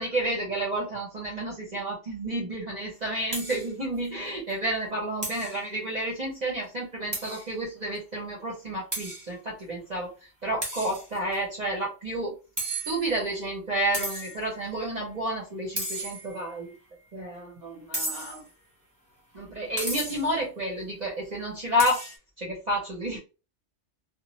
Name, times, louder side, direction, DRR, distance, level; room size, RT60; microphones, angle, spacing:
voice 1, 0.0-10.1 10.4-12.3 12.7-16.7 17.1-18.4 19.3-22.0 22.4-23.2, right 1 dB, 45° right, -3 dB, 0.8 m, -30 dB
sound 1, 3.3-3.7 4.0-4.1 4.5-4.6 5.2-5.6 7.1-7.5 7.9-8.0 8.9-9.3 10.6-11.3 12.6-13.3 13.9-14.5 15.8-16.5 17.9-18.5 19.8-20.3 21.8-22.2, right 1 dB, 15° right, 0.9 m, -34 dB
2.8 x 2.1 x 2.9 m, 0.31 s
omnidirectional pair, 1.2 m